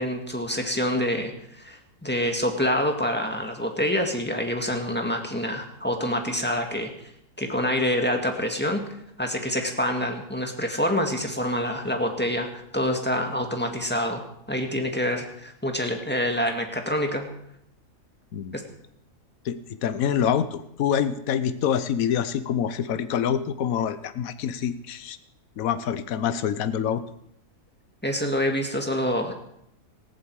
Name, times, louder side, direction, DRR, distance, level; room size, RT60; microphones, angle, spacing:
voice 1, 0.0-6.9 7.4-8.8 9.2-14.2 14.5-17.2 18.5-18.6 28.0-29.3, equal, 5° left, 3 dB, 1.8 m, -26 dB
voice 2, 19.4-25.2 25.6-27.0, left 8 dB, 65° left, 13 dB, 1.2 m, -26 dB
18.5 x 14.5 x 4.8 m, 0.74 s
omnidirectional pair, 1.6 m